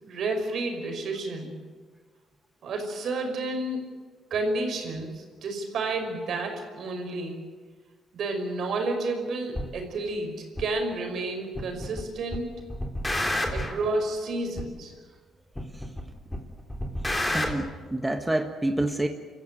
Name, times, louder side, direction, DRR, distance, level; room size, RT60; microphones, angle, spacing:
voice 1, 0.0-1.6 2.6-3.9 4.3-7.4 8.1-12.6 13.5-14.9, right 2 dB, 65° right, 4 dB, 5.6 m, -31 dB
sound 1, 9.5-9.7 10.6-10.7 11.6-12.0 12.3-13.8 14.6-14.7 15.6-16.0 16.3-17.5, left 1 dB, 15° left, 3.6 m, -29 dB
voice 2, 17.3-19.1, right 1 dB, 10° right, 5 dB, 1.5 m, -28 dB
28.5 x 14.5 x 9.5 m, 1.5 s
cardioid pair, 90°, 0 cm